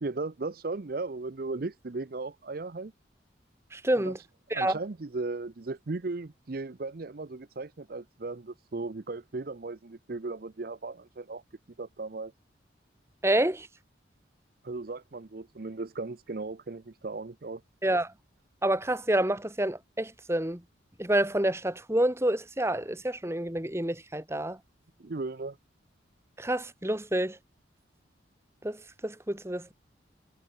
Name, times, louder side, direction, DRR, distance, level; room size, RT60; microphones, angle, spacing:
voice 1, 0.0-2.9 4.0-4.1 4.5-11.4 11.8-12.3 14.6-17.6 25.0-25.6, right 3 dB, 50° right, 0.6 m, -36 dB
voice 2, 3.7-4.2 4.5-4.8 13.2-13.7 17.8-18.1 18.6-20.6 21.0-24.6 26.4-27.4 28.6-29.7, right 1 dB, 15° right, 1.4 m, -28 dB
head